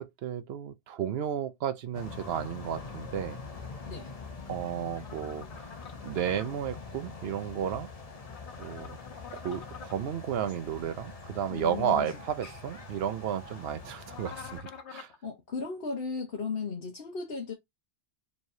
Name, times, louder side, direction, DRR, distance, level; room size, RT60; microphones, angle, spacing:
voice 1, 0.0-3.4 4.5-5.7 6.0-7.9 8.6-9.0 9.3-15.1, right 9 dB, 70° right, 0.8 m, -33 dB
sound 1, 1.9-14.6, left 4 dB, 35° left, 1.0 m, -44 dB
sound 2, 5.0-6.5 8.2-10.0 14.1-15.2, left 7 dB, 90° left, 1.2 m, -47 dB
voice 2, 11.5-12.1 15.2-17.5, left 5 dB, 60° left, 1.2 m, -35 dB
4.7 x 3.2 x 2.6 m
omnidirectional pair, 1.1 m